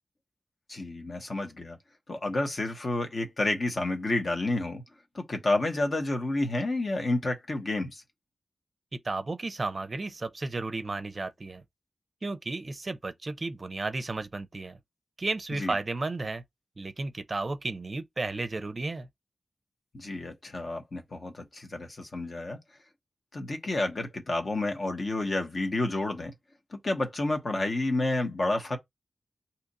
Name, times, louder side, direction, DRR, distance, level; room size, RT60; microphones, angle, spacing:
voice 1, 0.7-1.8 2.1-4.8 5.1-8.0 15.5-15.8 19.9-22.6 23.3-26.3 26.7-28.8, left 2 dB, 50° left, 0.9 m, -30 dB
voice 2, 9.0-11.6 12.2-14.8 15.2-16.4 16.8-19.1, right 3 dB, 45° right, 0.5 m, -33 dB
2.8 x 2.4 x 4.0 m
wide cardioid pair, 80°, 0 cm